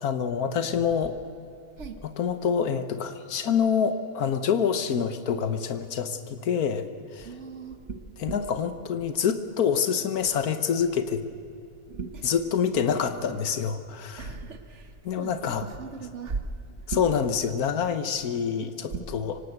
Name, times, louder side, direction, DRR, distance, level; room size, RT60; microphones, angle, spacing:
voice 1, 0.0-1.1 2.0-6.9 7.1-7.3 8.2-11.2 12.2-14.3 15.0-15.7 16.9-19.4, left 7 dB, 85° left, 10 dB, 1.5 m, -26 dB
voice 2, 7.2-8.4 11.9-12.3 14.2-17.1 18.9-19.1, right 4 dB, 55° right, 8 dB, 1.7 m, -37 dB
24.5 x 18.5 x 8.0 m, 2.6 s
omnidirectional pair, 1.5 m